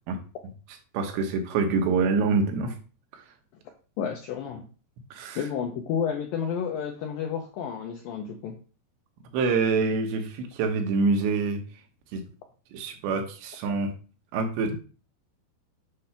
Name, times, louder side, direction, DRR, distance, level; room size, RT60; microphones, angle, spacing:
voice 1, 0.9-2.7 5.1-5.4 9.3-11.6 12.1-12.2 12.7-13.9 14.3-14.8, right 4 dB, 80° right, 4 dB, 3.3 m, -26 dB
voice 2, 4.0-4.6 5.4-8.6, left 7 dB, 85° left, 2 dB, 2.0 m, -31 dB
8.3 x 3.3 x 5.7 m, 0.36 s
omnidirectional pair, 5.0 m